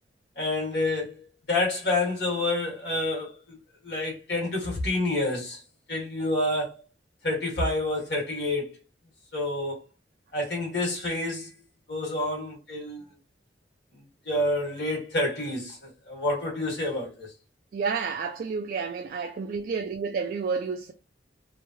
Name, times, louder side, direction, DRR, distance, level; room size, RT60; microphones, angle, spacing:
voice 1, 0.4-3.5 3.8-5.6 5.9-6.8 7.2-8.7 9.3-9.8 10.3-11.5 11.9-13.1 13.9-17.3, left 2 dB, 65° left, 1.6 m, -28 dB
voice 2, 17.7-20.9, right 5 dB, 50° right, 0.3 m, -30 dB
3.1 x 2.2 x 2.8 m
head